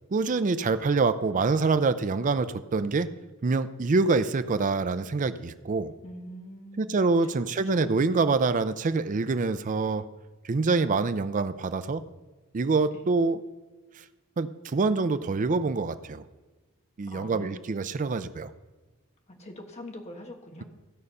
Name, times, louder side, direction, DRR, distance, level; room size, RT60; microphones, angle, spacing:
voice 1, 0.1-3.1 3.4-5.9 6.8-10.0 10.4-12.0 12.5-13.4 14.4-16.2 17.0-18.5, right 3 dB, 40° right, 12 dB, 0.4 m, -25 dB
voice 2, 6.0-7.0 7.2-8.0 12.9-13.0 17.0-17.5 19.3-20.6, left 1 dB, 30° left, 2 dB, 1.4 m, -44 dB
15.5 x 6.5 x 5.5 m, 1.2 s
head